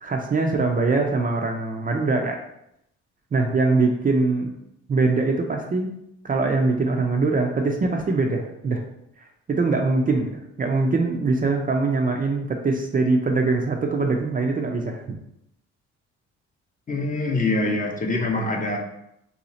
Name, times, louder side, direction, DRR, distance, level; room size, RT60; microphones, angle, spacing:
voice 1, 0.0-2.4 3.3-4.5 4.9-5.9 6.2-8.8 9.5-15.0, right 3 dB, 30° right, 2 dB, 0.4 m, -22 dB
voice 2, 16.9-18.8, left 2 dB, 25° left, 1 dB, 0.6 m, -24 dB
2.8 x 2.3 x 4.0 m, 0.79 s
cardioid pair, 90°, 30 cm